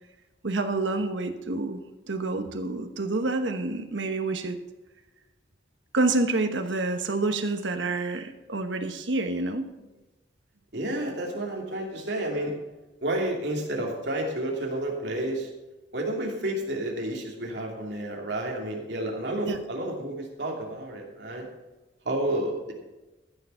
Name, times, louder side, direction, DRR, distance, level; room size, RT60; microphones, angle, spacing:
voice 1, 0.4-1.8 2.1-4.6 5.9-9.9 19.5-19.6, right 2 dB, 85° right, 7 dB, 1.1 m, -28 dB
voice 2, 10.7-12.5 13.0-15.5 15.9-21.5 22.0-22.7, right 1 dB, 65° right, 0 dB, 2.8 m, -30 dB
14.0 x 6.8 x 5.7 m, 1.1 s
head